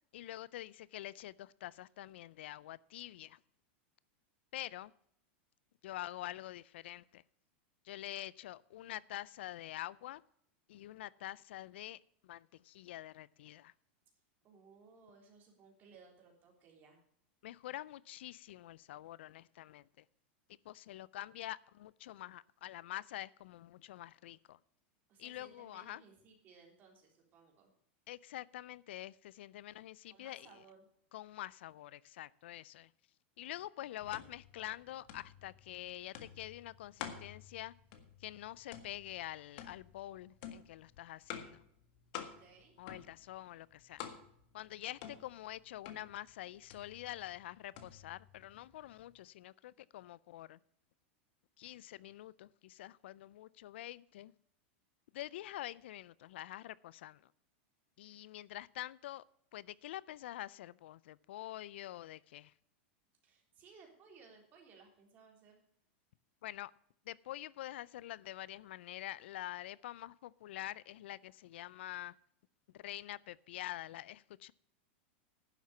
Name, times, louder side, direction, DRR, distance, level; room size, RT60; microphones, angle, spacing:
voice 1, 0.1-3.4 4.5-4.9 5.8-7.2 7.8-10.2 10.7-13.7 17.4-20.0 20.6-24.6 25.2-26.0 28.1-30.6 31.1-32.9 33.4-37.7 38.2-41.6 42.8-44.0 44.5-50.6 51.6-54.3 55.1-57.2 58.0-59.2 59.5-62.5 66.4-66.7 67.1-72.2 72.7-74.5, left 14 dB, 75° left, 0.4 m, -46 dB
voice 2, 14.4-17.0 25.1-27.7 30.1-30.9 42.2-42.7 63.2-65.6, right 5 dB, 30° right, 3.6 m, -61 dB
sound 1, 34.0-49.2, left 8 dB, 55° left, 1.7 m, -51 dB
11.0 x 7.4 x 7.0 m
supercardioid pair, 150°, 6 cm